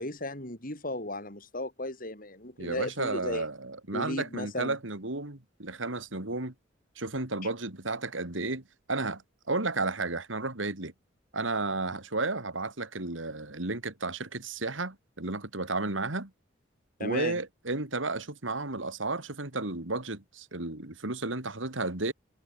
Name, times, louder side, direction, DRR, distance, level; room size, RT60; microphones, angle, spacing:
voice 1, 0.0-3.5 3.9-4.8 17.0-17.4, left 1 dB, 45° left, 7.8 m, -35 dB
voice 2, 2.6-6.5 7.0-8.6 8.9-9.2 9.5-10.9 11.3-16.3 17.0-22.1, right 3 dB, 80° right, 3.0 m, -33 dB
head